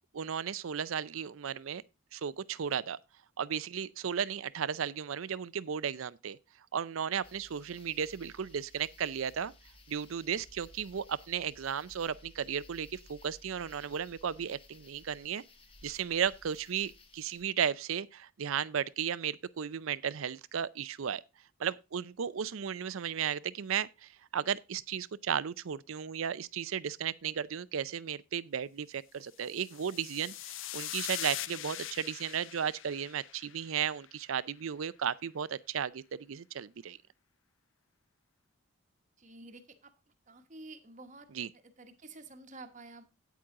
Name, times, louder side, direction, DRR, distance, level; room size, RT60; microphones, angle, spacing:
voice 1, 0.1-1.8 2.1-3.0 3.4-6.4 6.7-9.5 9.9-15.4 15.8-21.2 21.6-37.0 41.3-41.5, right 8 dB, 75° right, 0.5 m, -35 dB
sound 1, 7.2-17.4, left 2 dB, 25° left, 1.0 m, -58 dB
sound 2, 29.4-33.9, left 13 dB, 65° left, 0.5 m, -41 dB
voice 2, 39.2-39.9 40.3-43.0, right 2 dB, 35° right, 1.1 m, -50 dB
9.3 x 8.5 x 3.7 m
head